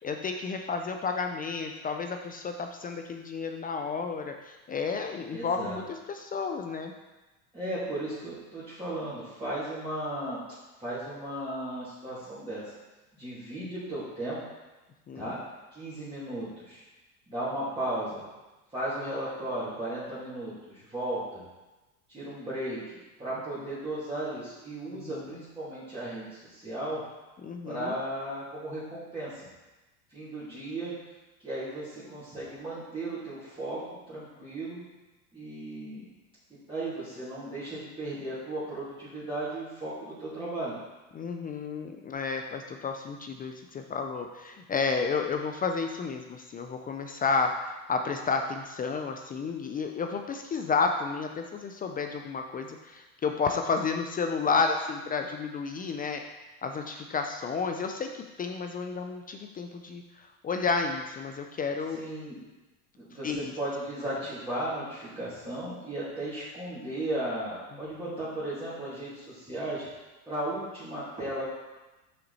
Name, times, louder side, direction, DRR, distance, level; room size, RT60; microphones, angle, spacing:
voice 1, 0.0-6.9 15.1-15.4 24.9-25.3 27.4-28.0 41.1-47.5 47.9-56.2 56.6-62.0 63.2-63.5 67.9-68.0, left 5 dB, 20° left, 5 dB, 0.4 m, -31 dB
voice 2, 5.3-5.8 7.5-10.4 10.8-12.7 13.2-14.4 15.1-15.4 15.7-16.8 17.3-18.2 18.7-21.4 22.1-22.8 23.2-27.0 27.6-29.4 30.1-30.9 31.4-33.8 34.1-34.8 35.3-36.0 36.5-40.7 61.9-62.4 63.0-69.9 70.3-71.4, right 1 dB, 10° right, -12 dB, 2.6 m, -35 dB
6.5 x 5.7 x 4.1 m, 1.1 s
supercardioid pair, 105°, 45 cm